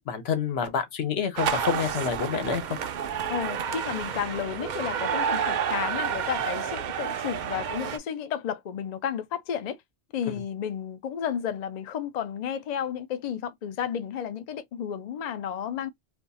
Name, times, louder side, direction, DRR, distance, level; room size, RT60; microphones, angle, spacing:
voice 1, 0.1-2.8, left 6 dB, 75° left, 1.0 m, -28 dB
sound 1, 1.4-8.0, right 7 dB, 55° right, 0.6 m, -30 dB
voice 2, 3.3-9.8 10.1-15.9, left 8 dB, 55° left, 0.5 m, -32 dB
2.5 x 2.3 x 3.9 m
omnidirectional pair, 1.1 m